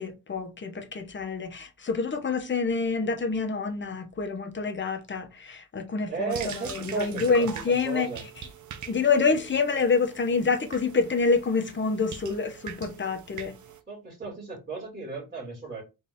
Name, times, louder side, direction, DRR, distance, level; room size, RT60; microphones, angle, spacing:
voice 1, 0.0-8.1 8.9-13.5, left 4 dB, 30° left, 0.8 m, -27 dB
voice 2, 6.1-8.2 9.3-9.4 13.9-15.8, right 4 dB, 25° right, 2.4 m, -35 dB
sound 1, 6.3-13.8, right 7 dB, 55° right, 0.7 m, -43 dB
4.1 x 2.7 x 3.4 m
cardioid pair, 110°, 37 cm